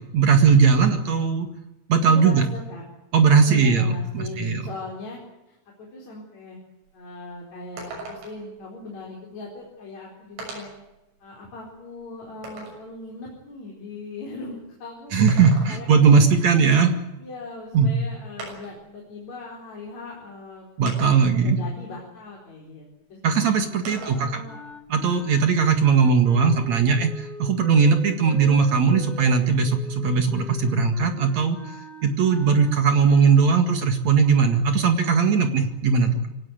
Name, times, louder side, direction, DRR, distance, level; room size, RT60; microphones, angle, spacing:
voice 1, 0.1-1.5 1.9-2.4 3.1-4.6 15.1-16.9 17.7-17.9 20.8-21.6 23.2-24.4 24.9-31.6 32.0-36.2, right 5 dB, 50° right, 7 dB, 2.4 m, -19 dB
voice 2, 2.0-2.8 3.5-6.6 6.9-10.7 11.2-16.4 17.2-20.7 21.2-23.5 23.9-24.6, left 3 dB, 40° left, -2 dB, 5.3 m, -39 dB
sound 1, 6.8-6.9 7.3-7.4 7.8-8.5 9.6-9.7 10.4-10.9 11.4-12.9 15.1-16.1 17.5-17.6 18.4-18.9 19.9-20.0 20.9-21.5 23.9-24.3 24.7-25.8, right 2 dB, 75° right, 9.2 m, -40 dB
sound 2, 23.8-33.5, right 1 dB, ahead, 2.6 m, -43 dB
24.5 x 18.0 x 9.4 m, 0.95 s
omnidirectional pair, 5.5 m